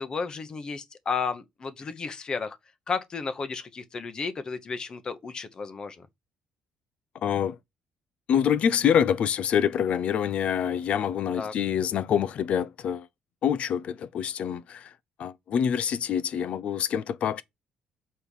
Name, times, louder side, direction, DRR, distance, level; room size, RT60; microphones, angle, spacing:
voice 1, 0.0-2.6 2.9-6.0 11.4-11.5, left 5 dB, 30° left, 1.0 m, -33 dB
voice 2, 7.2-7.6 8.3-13.1 13.4-14.9 15.2-17.4, left 8 dB, 50° left, 0.6 m, -26 dB
6.5 x 4.3 x 5.4 m
cardioid pair, 140°, 3 cm